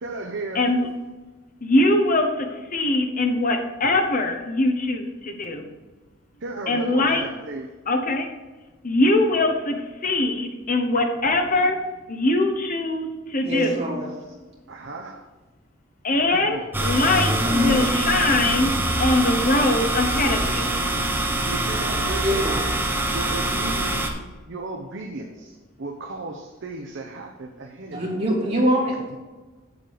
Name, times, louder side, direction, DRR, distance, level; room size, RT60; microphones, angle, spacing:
voice 1, 0.0-0.7 6.4-7.7 14.7-15.3 16.3-16.7 17.4-17.8 21.4-22.6 23.0-24.1 24.5-28.2, right 2 dB, 60° right, 2 dB, 0.8 m, -35 dB
voice 2, 0.5-0.9 1.6-5.7 6.7-7.2 7.9-8.3 8.8-11.8 12.1-14.1 16.0-18.7 19.0-20.7, left 2 dB, 40° left, 4 dB, 1.1 m, -22 dB
voice 3, 13.4-14.1 22.2-22.6 27.9-29.2, equal, 30° right, -5 dB, 3.0 m, -24 dB
sound 1, 16.7-24.1, right 1 dB, 10° right, 1.0 m, -24 dB
7.6 x 7.3 x 4.7 m, 1.2 s
head